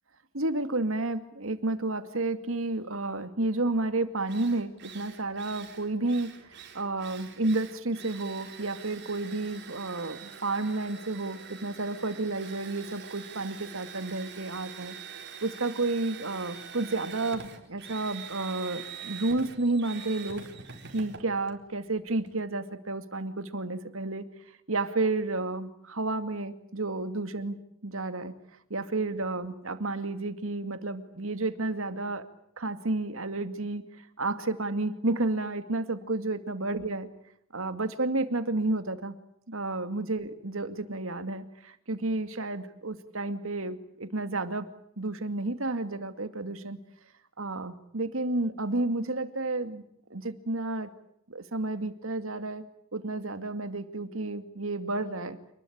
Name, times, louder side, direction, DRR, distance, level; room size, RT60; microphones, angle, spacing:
voice 1, 0.3-14.9 15.4-20.4 20.9-24.2 24.7-28.3 28.7-32.2 32.6-33.9 34.2-37.1 37.5-39.2 39.5-44.7 45.0-46.8 47.4-49.8 50.1-50.9 51.3-52.6 52.9-55.4, right 2 dB, 75° right, 10 dB, 2.4 m, -31 dB
Drill, 3.8-3.9 4.3-22.4, right 7 dB, 55° right, 4.4 m, -45 dB
28.5 x 21.0 x 8.8 m, 0.72 s
head